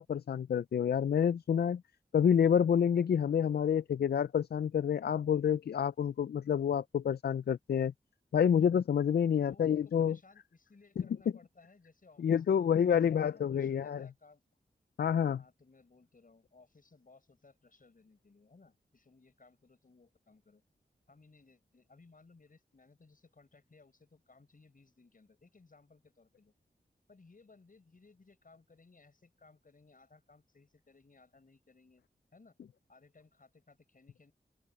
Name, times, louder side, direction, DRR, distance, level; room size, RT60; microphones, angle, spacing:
voice 1, 0.0-1.8 2.1-7.9 8.3-10.2 12.2-14.1 15.0-15.4, left 8 dB, 80° left, 0.4 m, -28 dB
voice 2, 9.3-14.4 15.4-20.6 21.1-26.5 27.1-32.0 32.3-32.6 32.9-34.3, left 3 dB, 55° left, 6.5 m, -62 dB
open air
wide cardioid pair, 80°, 17 cm